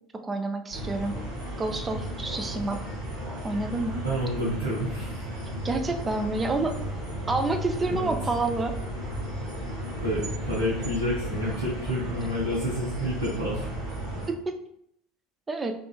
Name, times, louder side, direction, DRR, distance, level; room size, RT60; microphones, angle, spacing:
voice 1, 0.2-1.1 1.6-2.8 3.4-4.0 5.6-6.7 7.3-8.7 14.3-14.6 15.5-15.7, right 3 dB, 20° right, 6 dB, 0.4 m, -28 dB
sound 1, 0.7-14.3, equal, 55° right, 1.4 m, -34 dB
voice 2, 4.0-5.3 7.9-8.1 10.0-13.7, equal, 75° right, -8 dB, 0.9 m, -29 dB
3.6 x 2.3 x 2.4 m, 0.71 s
figure-of-eight pair, 70°, 0 cm